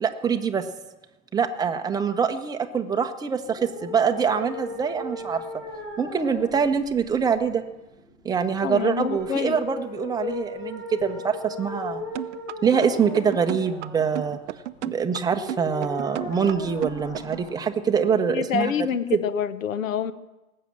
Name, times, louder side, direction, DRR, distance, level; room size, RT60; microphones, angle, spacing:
voice 1, 0.0-0.6 1.3-5.4 6.0-7.6 8.2-12.0 12.6-14.4 14.8-18.7 19.1-19.2, right 6 dB, 10° right, 5 dB, 0.7 m, -24 dB
sound 1, 3.4-18.4, left 2 dB, 45° left, 3.8 m, -38 dB
voice 2, 8.6-9.6 18.3-20.1, left 7 dB, 65° left, 15 dB, 1.0 m, -27 dB
sound 2, 12.2-17.5, right 13 dB, 55° right, 0.6 m, -33 dB
18.5 x 7.6 x 7.3 m, 1.0 s
figure-of-eight pair, 105°, 43 cm